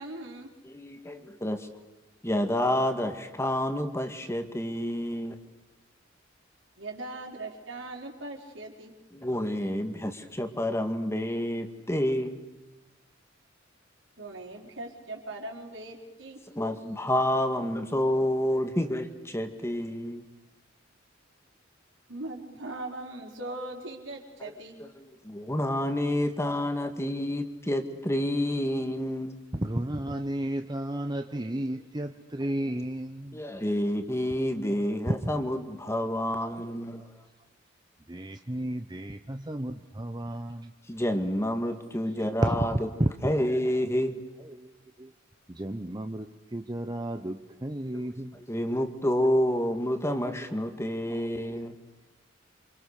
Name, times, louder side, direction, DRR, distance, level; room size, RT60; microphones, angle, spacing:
voice 1, 0.0-0.5 6.8-8.9 14.2-16.4 22.1-24.8, right 2 dB, 70° right, 1 dB, 4.9 m, -40 dB
voice 2, 0.7-1.7 2.2-5.4 9.1-12.4 16.5-20.2 24.4-24.5 24.8-29.4 33.3-37.0 40.9-42.7 43.2-44.2 47.9-48.0 48.5-51.7, left 1 dB, 15° left, 7 dB, 2.0 m, -29 dB
voice 3, 29.5-33.6 35.2-35.3 37.0-37.1 38.1-40.7 42.2-43.9 44.4-44.7 45.0-45.1 45.5-48.4 50.4-50.8, right 1 dB, 20° right, 6 dB, 1.0 m, -33 dB
28.5 x 26.5 x 6.7 m, 1.1 s
head